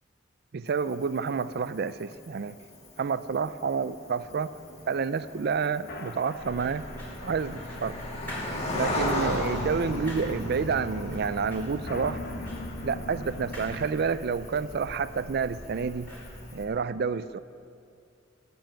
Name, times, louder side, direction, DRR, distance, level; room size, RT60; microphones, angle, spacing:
voice 1, 0.5-2.5 3.0-4.5 4.9-6.9 7.2-8.0 8.7-12.2 12.8-16.1 16.5-17.4, right 5 dB, 55° right, 14 dB, 0.4 m, -29 dB
Cricket, 0.7-16.6, left 1 dB, 35° left, 2.0 m, -39 dB
sound 1, 4.2-13.9, left 1 dB, 55° left, 1.2 m, -40 dB
sound 2, 6.4-16.7, equal, 10° left, 4.8 m, -43 dB
17.5 x 7.1 x 9.0 m, 2.4 s
head